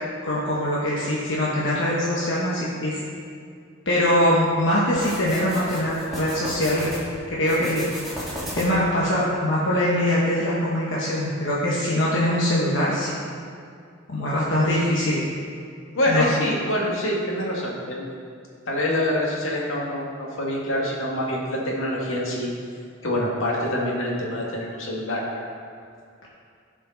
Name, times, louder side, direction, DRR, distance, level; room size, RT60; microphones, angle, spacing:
voice 1, 0.2-3.0 3.9-6.9 7.3-7.9 8.5-13.2 14.1-15.2 16.1-16.2, left 1 dB, 65° left, -6 dB, 1.2 m, -22 dB
sound 1, 4.9-7.0 7.4-8.9, equal, ahead, 2.2 m, -34 dB
voice 2, 15.9-18.1 18.7-22.5 23.0-25.5, left 1 dB, 80° left, -3 dB, 1.9 m, -25 dB
15.0 x 5.1 x 4.0 m, 2.3 s
head